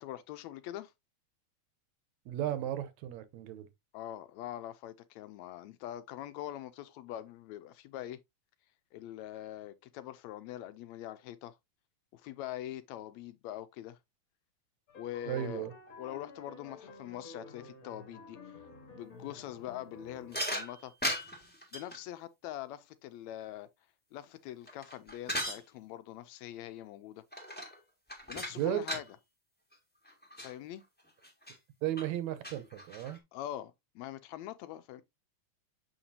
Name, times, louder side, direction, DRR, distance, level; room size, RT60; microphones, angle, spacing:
voice 1, 0.0-0.9 3.9-8.2 8.9-11.6 12.1-14.0 15.0-15.7 16.0-18.5 18.9-20.9 21.7-23.7 24.1-27.2 28.3-29.0 30.4-30.8 33.3-35.0, left 12 dB, 80° left, 1.7 m, -43 dB
voice 2, 2.3-3.7 15.3-15.7 28.6-29.0 31.8-33.2, right 12 dB, 80° right, 2.0 m, -35 dB
sound 1, 14.9-20.6, left 3 dB, 40° left, 1.4 m, -52 dB
sound 2, 20.3-22.0 24.3-25.6 27.3-27.8 28.1-29.1 29.7-29.8 30.1-30.5 31.2-31.6 32.0-32.1 32.4-33.2, equal, 5° left, 1.0 m, -37 dB
7.2 x 5.8 x 2.7 m
omnidirectional pair, 3.4 m